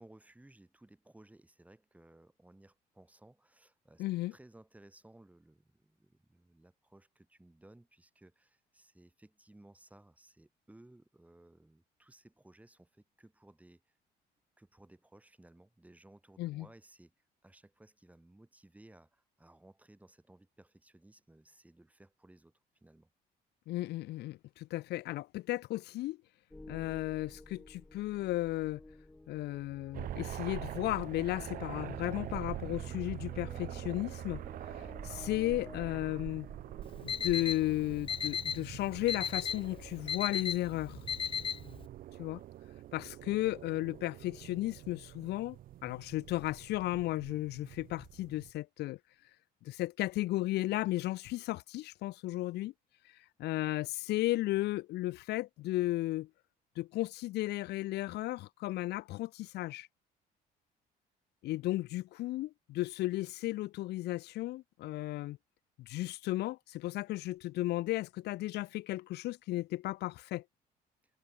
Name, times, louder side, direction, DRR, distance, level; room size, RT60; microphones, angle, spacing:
voice 1, 0.0-4.0 4.3-13.8 14.6-17.1 17.4-22.5 22.8-23.1, right 1 dB, 10° right, 5.7 m, -59 dB
voice 2, 4.0-4.3 16.4-16.7 23.7-26.2 26.7-28.8 29.3-34.4 35.0-36.5 37.0-41.0 42.2-42.4 42.9-45.6 45.8-49.0 49.6-52.7 53.4-56.3 56.8-59.9 61.4-65.4 65.8-70.4, left 17 dB, 80° left, 1.6 m, -34 dB
sound 1, 26.5-37.3, left 2 dB, 10° left, 2.9 m, -52 dB
sound 2, 29.9-48.5, right 13 dB, 55° right, 0.6 m, -45 dB
Alarm, 36.8-41.9, left 7 dB, 30° left, 0.6 m, -36 dB
cardioid pair, 110°, 17 cm